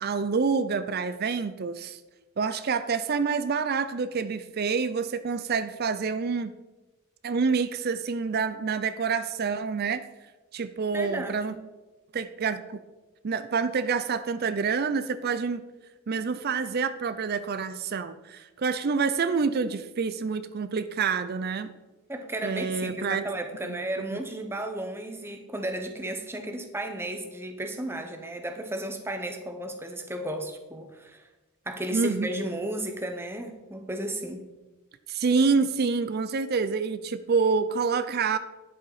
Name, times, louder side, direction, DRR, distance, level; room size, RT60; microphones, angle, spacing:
voice 1, 0.0-2.0 2.4-6.5 7.2-10.1 10.5-11.5 12.1-12.8 13.2-15.6 16.1-21.7 22.4-23.3 23.7-23.8 31.9-32.3 35.1-38.4, right 5 dB, 45° right, 12 dB, 0.4 m, -27 dB
voice 2, 10.9-11.6 22.1-31.3 31.7-34.5, right 1 dB, 10° right, 5 dB, 0.9 m, -34 dB
10.5 x 7.6 x 4.1 m, 1.1 s
head